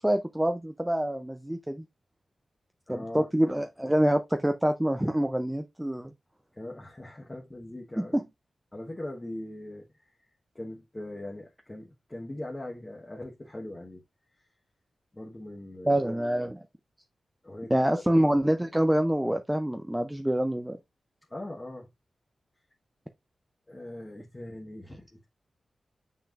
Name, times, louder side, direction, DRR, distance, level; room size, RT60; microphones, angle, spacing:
voice 1, 0.0-1.9 2.9-6.1 8.0-8.2 15.8-16.6 17.7-20.8, right 1 dB, 5° right, 0.4 m, -26 dB
voice 2, 2.9-3.3 6.5-8.2 8.7-10.3 10.5-14.0 14.4-14.5 15.1-16.1 17.4-18.0 21.3-21.9 23.7-25.3, left 1 dB, 15° left, 1.1 m, -41 dB
6.8 x 5.8 x 2.4 m
wide cardioid pair, 170°, 0 cm